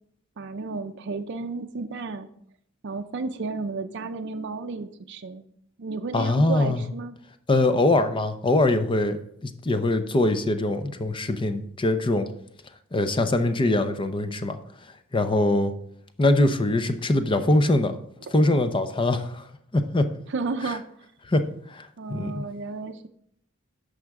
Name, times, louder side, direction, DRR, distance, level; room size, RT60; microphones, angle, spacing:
voice 1, 0.4-2.3 2.8-5.4 5.8-7.2 20.3-20.8 22.0-23.1, right 4 dB, 55° right, 7 dB, 0.5 m, -32 dB
voice 2, 6.1-6.8 7.5-9.2 9.4-12.3 12.9-14.6 15.1-15.7 16.2-17.9 18.3-19.4 19.7-20.1 20.7-20.8 21.3-22.5, left 2 dB, 25° left, 9 dB, 0.6 m, -23 dB
10.5 x 6.5 x 3.6 m, 0.69 s
head